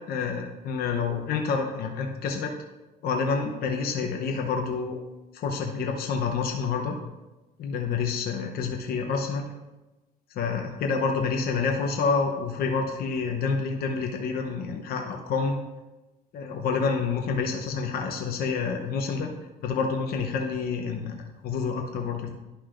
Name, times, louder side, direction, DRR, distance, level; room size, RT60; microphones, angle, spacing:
voice 1, 0.1-2.5 3.0-5.0 5.3-7.0 7.6-9.4 10.3-15.6 16.3-19.3 19.6-22.3, left 5 dB, 65° left, 2 dB, 0.8 m, -28 dB
11.5 x 5.4 x 2.5 m, 1.1 s
cardioid pair, 110°, 17 cm